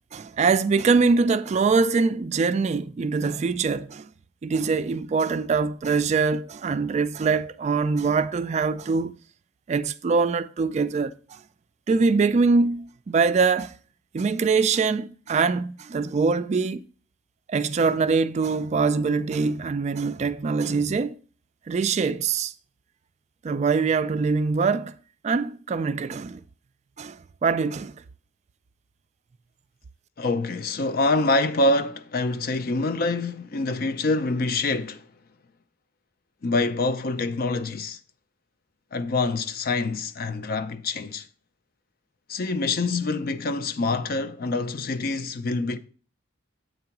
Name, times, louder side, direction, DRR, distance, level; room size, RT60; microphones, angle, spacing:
voice 1, 0.1-4.1 4.4-9.2 9.7-11.4 11.9-13.7 14.1-16.8 17.5-21.2 21.7-22.5 23.4-24.9 25.2-26.4 27.0-27.9, right 4 dB, 35° right, 0.3 m, -23 dB
voice 2, 30.2-35.1 36.4-38.0 38.9-41.3 42.3-45.8, left 2 dB, 50° left, 0.5 m, -25 dB
7.8 x 3.8 x 5.8 m
head